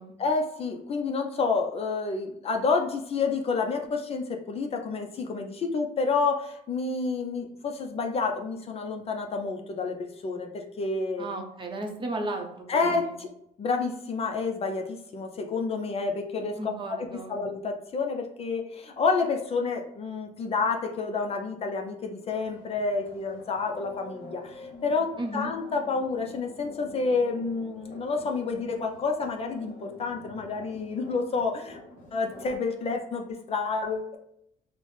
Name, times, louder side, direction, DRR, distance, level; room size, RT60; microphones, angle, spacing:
voice 1, 0.2-11.3 12.7-13.3 13.6-17.0 17.3-31.8 32.1-34.2, left 4 dB, 35° left, 3 dB, 0.4 m, -29 dB
voice 2, 11.2-13.1 16.6-17.4 25.2-25.5, right 2 dB, 30° right, 3 dB, 0.7 m, -34 dB
sound 1, 22.3-33.1, left 2 dB, 55° left, 1.0 m, -47 dB
3.9 x 2.0 x 3.1 m, 0.75 s
cardioid pair, 110°, 17 cm